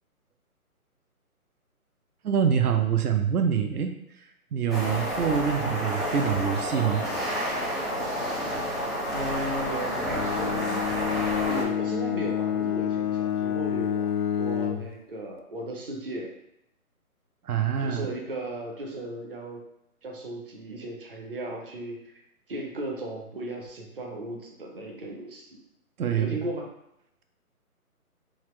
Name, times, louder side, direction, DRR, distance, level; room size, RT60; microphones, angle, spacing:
voice 1, 2.2-4.0 4.5-7.1 17.5-18.1 26.0-26.4, right 8 dB, 80° right, 6 dB, 0.6 m, -25 dB
sound 1, 4.7-11.6, equal, ahead, 0.4 m, -30 dB
voice 2, 9.1-10.8 11.5-14.1 14.4-16.3 17.8-19.6 20.0-22.1 22.5-25.6 26.2-26.7, right 1 dB, 40° right, 0 dB, 0.7 m, -36 dB
Bowed string instrument, 10.0-14.9, left 10 dB, 80° left, 0.6 m, -28 dB
4.0 x 2.5 x 3.0 m, 0.79 s
hypercardioid pair, 165°, 44 cm